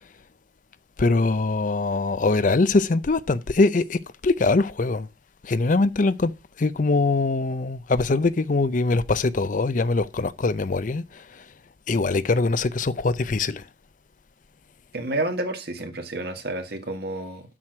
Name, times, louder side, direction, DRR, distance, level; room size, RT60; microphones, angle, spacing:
voice 1, 1.0-5.1 5.4-6.3 6.6-11.2 11.9-13.6, left 3 dB, 45° left, 0.5 m, -22 dB
voice 2, 14.9-17.4, right 2 dB, 60° right, 1.7 m, -30 dB
7.5 x 6.3 x 5.9 m
head